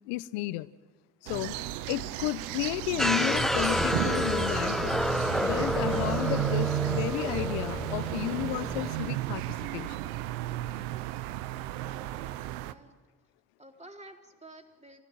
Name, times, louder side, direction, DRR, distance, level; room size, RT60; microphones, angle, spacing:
voice 1, 0.1-0.7 1.2-1.6 1.9-4.9 5.4-10.1, left 17 dB, 80° left, 17 dB, 0.8 m, -33 dB
sound 1, 1.3-12.7, right 14 dB, 85° right, 0.8 m, -33 dB
sound 2, 3.0-8.9, equal, ahead, 0.9 m, -29 dB
voice 2, 11.8-12.9 13.6-15.0, right 1 dB, 15° right, 2 dB, 3.8 m, -51 dB
26.5 x 16.0 x 9.2 m, 1.3 s
hypercardioid pair, 50°, 42 cm